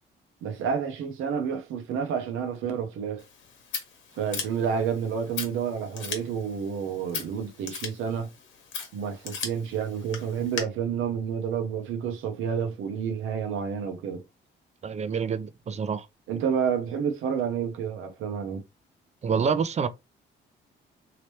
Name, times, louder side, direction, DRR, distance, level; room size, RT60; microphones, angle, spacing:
voice 1, 0.4-3.2 4.2-8.3 8.9-14.2 16.3-18.6, right 7 dB, 85° right, 0.8 m, -29 dB
Scissors, 3.2-10.6, left 6 dB, 70° left, 1.1 m, -39 dB
voice 2, 14.8-16.1 19.2-19.9, right 6 dB, 35° right, 0.5 m, -27 dB
3.1 x 2.9 x 3.0 m
cardioid pair, 90°, 20 cm